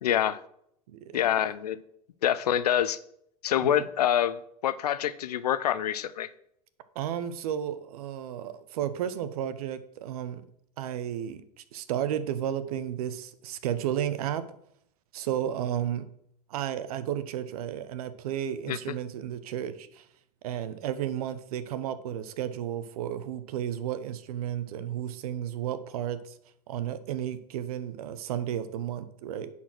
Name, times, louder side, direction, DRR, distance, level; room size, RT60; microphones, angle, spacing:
voice 1, 0.0-0.4 1.1-1.8 2.2-3.0 3.4-6.3 18.7-18.8, left 10 dB, 85° left, 15 dB, 0.7 m, -26 dB
voice 2, 6.9-10.4 10.8-11.4 11.7-14.4 15.1-16.0 16.5-20.0 20.4-26.3 26.7-29.5, right 10 dB, 70° right, 13 dB, 1.0 m, -33 dB
10.0 x 4.5 x 6.0 m, 0.71 s
hypercardioid pair, 105°, 20 cm